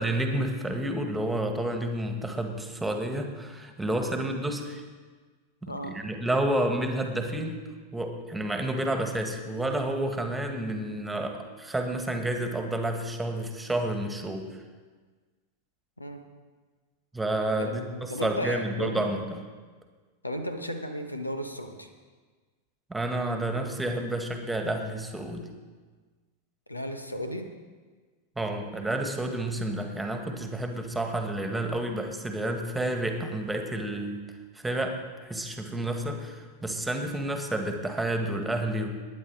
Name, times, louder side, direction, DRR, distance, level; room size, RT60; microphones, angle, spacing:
voice 1, 0.0-4.8 5.6-7.6 7.9-14.6 17.1-19.4 22.9-25.5 28.4-34.2 34.6-38.9, right 1 dB, 5° right, 5 dB, 1.7 m, -30 dB
voice 2, 5.7-6.0 16.0-16.2 17.6-19.1 20.2-21.9 26.7-27.6, equal, 85° left, 7 dB, 1.3 m, -35 dB
20.5 x 9.8 x 4.8 m, 1.4 s
figure-of-eight pair, 90°, 0 cm